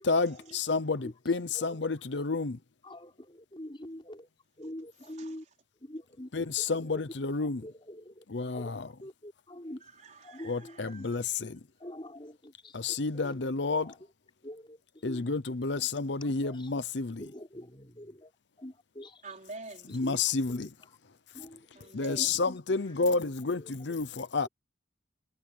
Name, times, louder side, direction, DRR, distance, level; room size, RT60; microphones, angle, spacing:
voice 1, 0.0-2.6 6.3-7.7 8.3-8.9 10.5-11.6 12.7-13.9 15.0-17.3 19.9-20.7 21.9-24.5, left 4 dB, 70° left, 0.8 m, -30 dB
voice 2, 1.5-1.9 2.8-4.3 4.6-5.4 5.8-6.3 6.6-7.0 7.4-8.2 8.5-9.8 10.2-11.1 11.8-13.4 13.8-14.0 14.4-15.4 15.7-15.9 16.2-16.9 17.2-18.3 18.6-19.2 19.9-20.2 20.5-21.0 21.3-22.6 23.0-23.1 23.6-23.7, left 1 dB, 30° left, 4.8 m, -46 dB
voice 3, 5.0-5.4 9.8-11.3 19.2-19.9 21.7-22.4, right 3 dB, 40° right, 4.7 m, -48 dB
head